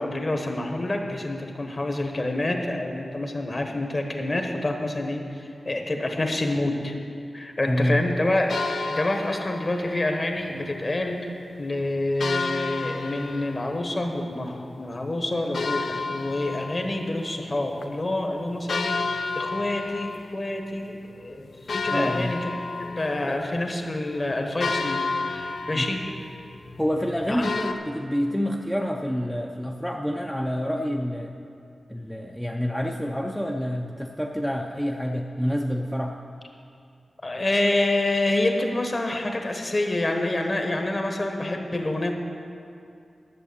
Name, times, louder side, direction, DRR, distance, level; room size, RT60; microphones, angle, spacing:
voice 1, 0.0-6.9 7.3-11.3 11.6-22.5 22.8-26.0 27.3-27.5 37.2-42.1, left 1 dB, 35° left, 3 dB, 1.2 m, -27 dB
voice 2, 7.7-8.0 21.9-22.3 23.3-23.4 25.7-25.9 26.8-31.3 31.9-36.2, equal, 5° left, 1 dB, 0.5 m, -27 dB
sound 1, 8.5-10.2 12.2-14.6 15.5-17.6 17.8-17.9 18.7-20.7 21.1-21.2 21.7-27.7, left 4 dB, 70° left, 0.6 m, -31 dB
11.0 x 7.2 x 6.9 m, 2.4 s
wide cardioid pair, 120°, 0 cm